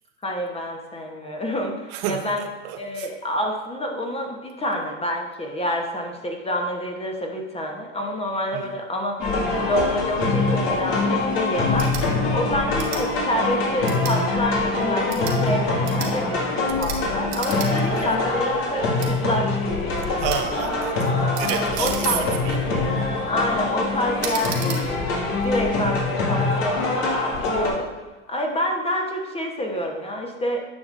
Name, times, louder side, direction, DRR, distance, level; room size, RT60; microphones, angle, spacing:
voice 1, 0.2-2.4 2.8-16.4 16.8-20.2 21.8-22.2 23.3-25.1 25.4-27.1 27.5-27.9 28.3-30.6, left 1 dB, 15° left, 2 dB, 1.1 m, -28 dB
voice 2, 1.9-3.1 8.5-8.7 15.5-15.8 17.8-18.2 20.2-22.6, right 9 dB, 55° right, 6 dB, 0.7 m, -30 dB
sound 1, 9.2-27.7, left 3 dB, 55° left, 2.2 m, -24 dB
sound 2, 11.7-12.0 12.7-13.0 13.8-14.2 15.0-15.4 15.8-16.1 16.8-17.0 17.3-17.7 18.0-18.1 19.0-19.1 20.3-20.5 21.3-22.4 22.9-23.3 24.2-24.8, right 7 dB, 70° right, 1.6 m, -34 dB
9.7 x 5.8 x 2.6 m, 1.2 s
supercardioid pair, 115°, 39 cm